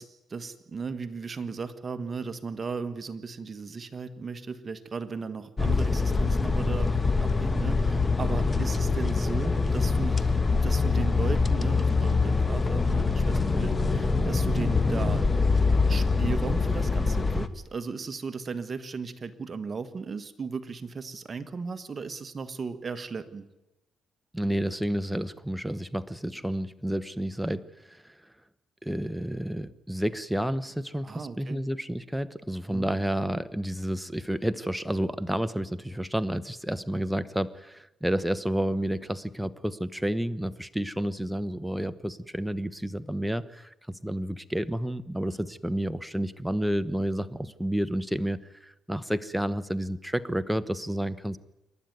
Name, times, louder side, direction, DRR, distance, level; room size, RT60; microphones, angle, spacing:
voice 1, 0.0-15.3 15.9-23.5 31.0-31.6 32.7-32.9, right 5 dB, 35° right, 9 dB, 1.6 m, -36 dB
sound 1, 5.6-17.5, left 4 dB, 25° left, 1.3 m, -24 dB
voice 2, 24.3-28.1 28.8-51.4, equal, ahead, 12 dB, 1.0 m, -30 dB
27.5 x 12.0 x 9.4 m, 0.97 s
cardioid pair, 90°, 0 cm